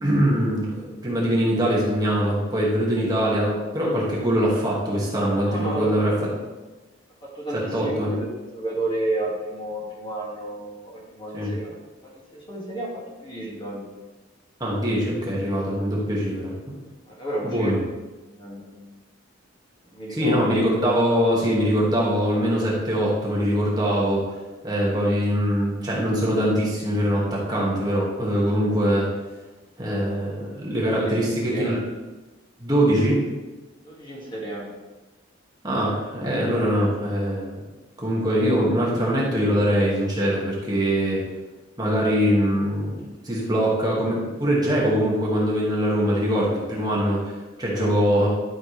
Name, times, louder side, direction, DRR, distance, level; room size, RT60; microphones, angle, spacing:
voice 1, 0.0-6.1 7.7-8.1 11.3-11.5 14.6-16.7 17.4-17.8 20.1-24.2 24.6-29.1 29.8-31.8 32.6-33.2 35.6-37.6 38.0-41.2 41.8-48.3, equal, 20° right, -5 dB, 1.9 m, -23 dB
voice 2, 5.5-6.4 7.2-11.8 12.0-12.9 13.2-13.8 17.1-17.8 18.2-18.9 19.9-20.5 30.9-31.7 33.8-34.6 47.7-47.9 48.2-48.3, right 1 dB, 25° left, -4 dB, 2.1 m, -31 dB
12.0 x 6.0 x 3.3 m, 1.2 s
head